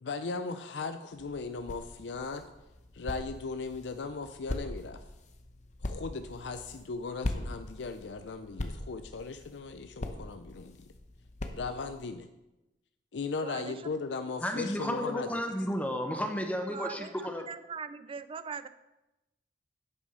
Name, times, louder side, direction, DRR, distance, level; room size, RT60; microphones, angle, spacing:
voice 1, 0.0-2.4 2.9-5.1 5.8-10.9 11.5-12.3 13.1-15.3, left 4 dB, 80° left, 9 dB, 0.5 m, -37 dB
sound 1, 1.1-12.1, left 1 dB, 45° left, 0.9 m, -41 dB
voice 2, 13.4-13.7 16.7-17.1 17.5-18.7, right 6 dB, 30° right, 13 dB, 0.3 m, -40 dB
voice 3, 14.4-17.5, equal, 10° left, 5 dB, 0.9 m, -32 dB
9.5 x 6.2 x 5.5 m, 0.97 s
head